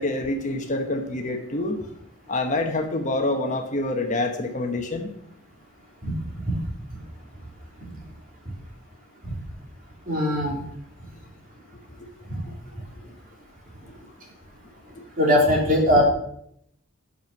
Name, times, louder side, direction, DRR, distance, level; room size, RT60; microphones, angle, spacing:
voice 1, 0.0-1.8 2.3-5.1, left 2 dB, 35° left, 4 dB, 1.1 m, -26 dB
voice 2, 10.1-10.6 12.3-12.4 15.2-16.0, left 1 dB, 40° right, -2 dB, 3.2 m, -20 dB
9.2 x 6.9 x 5.8 m, 0.72 s
head